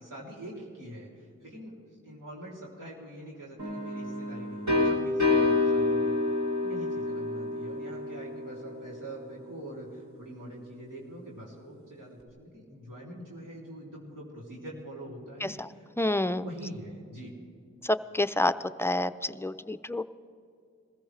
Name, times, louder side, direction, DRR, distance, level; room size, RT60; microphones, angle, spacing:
voice 1, 0.0-1.8 2.0-6.1 6.6-17.3, right 1 dB, 85° right, -5 dB, 3.3 m, -44 dB
sound 1, 3.6-9.3, left 3 dB, 65° right, 2.7 m, -28 dB
voice 2, 16.0-16.5 17.8-18.5 18.8-20.0, left 1 dB, 10° left, 12 dB, 0.4 m, -28 dB
21.5 x 15.0 x 3.3 m, 2.4 s
cardioid pair, 40°, 31 cm